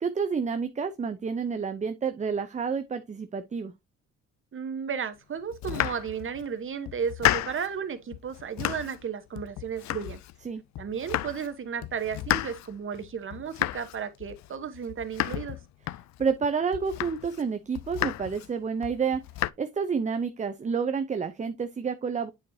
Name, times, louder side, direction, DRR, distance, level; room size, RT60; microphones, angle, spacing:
voice 1, 0.0-3.7 10.4-10.6 16.2-19.2 19.6-22.3, right 5 dB, 25° right, 0.6 m, -29 dB
voice 2, 4.5-10.2 10.8-15.6, right 7 dB, 40° right, 1.1 m, -34 dB
Domestic sounds home sounds, 5.5-6.5 6.9-7.8 8.1-9.1 9.4-10.5 10.7-11.5 11.8-16.4 16.7-17.4 17.7-18.5 18.8-19.5, left 15 dB, 65° left, 0.4 m, -32 dB
8.4 x 4.7 x 2.7 m
cardioid pair, 90°, 30 cm